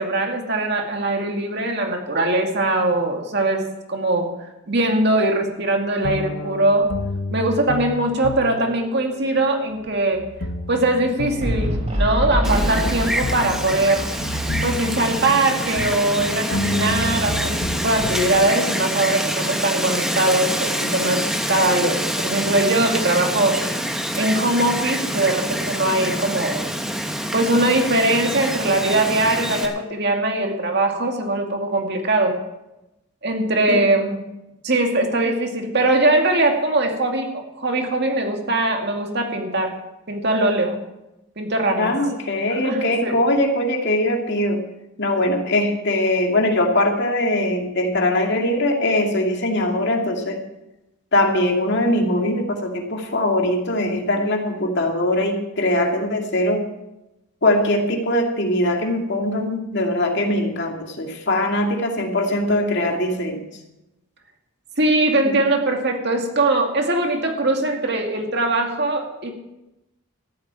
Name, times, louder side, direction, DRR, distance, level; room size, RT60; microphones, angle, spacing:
voice 1, 0.0-4.3 4.7-6.9 7.3-10.2 10.7-14.1 14.6-23.6 24.1-26.7 27.3-32.4 33.2-34.2 34.6-39.7 40.1-40.8 41.4-41.9 42.5-43.2 64.8-69.3, right 2 dB, 50° right, 3 dB, 2.2 m, -21 dB
sound 1, 6.0-18.5, left 1 dB, 75° left, 0.9 m, -30 dB
sound 2, 11.4-14.9, equal, 30° right, 3.8 m, -25 dB
Wind, 12.4-29.7, equal, ahead, 1.2 m, -26 dB
voice 2, 41.8-44.6 45.0-50.4 51.1-56.6 57.4-63.4 65.2-65.3, left 1 dB, 50° left, 2 dB, 2.3 m, -21 dB
14.0 x 7.6 x 8.7 m, 0.94 s
head